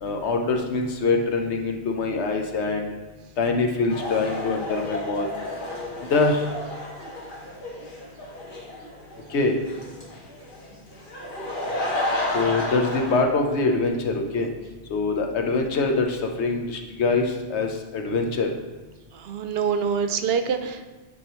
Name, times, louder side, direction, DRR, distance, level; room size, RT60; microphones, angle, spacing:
voice 1, 0.0-2.9 3.4-5.3 6.1-6.5 9.3-9.6 12.3-14.5 14.9-18.5, left 3 dB, 80° left, 3 dB, 1.1 m, -24 dB
sound 1, 3.9-13.2, left 1 dB, 50° left, 1.4 m, -32 dB
voice 2, 19.1-20.9, right 6 dB, 70° right, 8 dB, 0.7 m, -25 dB
9.7 x 4.9 x 3.0 m, 1.3 s
omnidirectional pair, 1.1 m